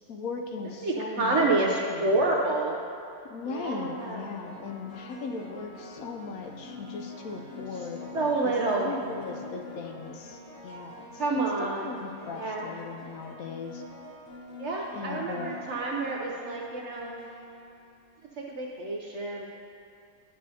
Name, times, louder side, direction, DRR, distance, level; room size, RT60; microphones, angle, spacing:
voice 1, 0.1-1.5 1.9-2.2 3.3-8.6 8.8-11.2 11.6-13.8 14.9-15.6, left 4 dB, 70° left, 3 dB, 0.9 m, -38 dB
voice 2, 0.8-2.8 3.4-4.3 8.1-8.9 11.2-11.9 12.3-12.7 14.6-17.1 18.4-19.5, right 2 dB, 65° right, -1 dB, 0.7 m, -28 dB
sound 1, 2.2-2.3 3.5-18.4, left 2 dB, 55° left, 1.5 m, -45 dB
10.0 x 6.6 x 2.7 m, 2.4 s
omnidirectional pair, 1.7 m